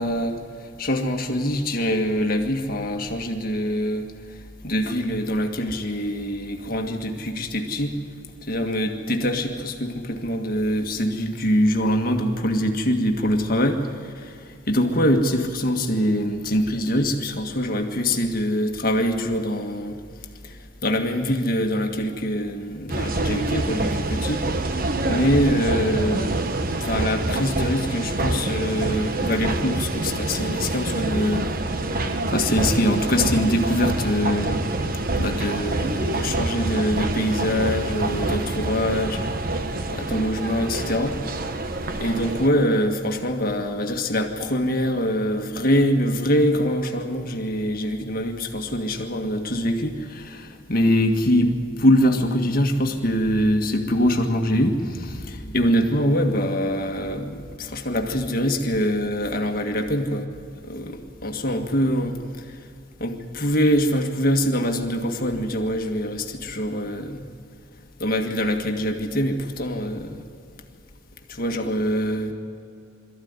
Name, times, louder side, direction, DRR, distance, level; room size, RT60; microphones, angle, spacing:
voice 1, 0.0-4.1 4.6-8.0 8.5-20.0 20.4-24.5 25.0-26.3 26.8-31.5 32.3-34.6 35.2-39.2 39.9-41.2 42.0-60.3 60.6-62.5 63.0-67.3 68.0-70.2 71.3-72.3, equal, 50° left, 3 dB, 1.8 m, -24 dB
sound 1, 22.9-42.5, right 2 dB, 50° right, 1.1 m, -26 dB
22.5 x 14.5 x 9.7 m, 2.4 s
head